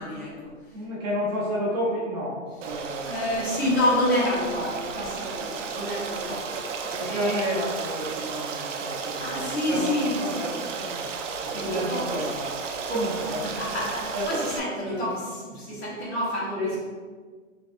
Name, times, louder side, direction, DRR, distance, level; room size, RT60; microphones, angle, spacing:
voice 1, 0.0-0.8 3.0-6.6 6.8-7.4 9.2-10.2 10.6-10.7 11.4-12.0 13.2-16.8, left 1 dB, 50° left, -6 dB, 1.4 m, -29 dB
voice 2, 0.7-3.5 6.8-9.9 10.2-11.1 11.4-13.5 14.1-15.0 16.6-16.8, equal, 30° right, -7 dB, 0.8 m, -31 dB
Stream, 2.6-14.6, right 5 dB, 70° right, 0.5 m, -33 dB
3.4 x 3.1 x 2.5 m, 1.5 s
hypercardioid pair, 155°, 39 cm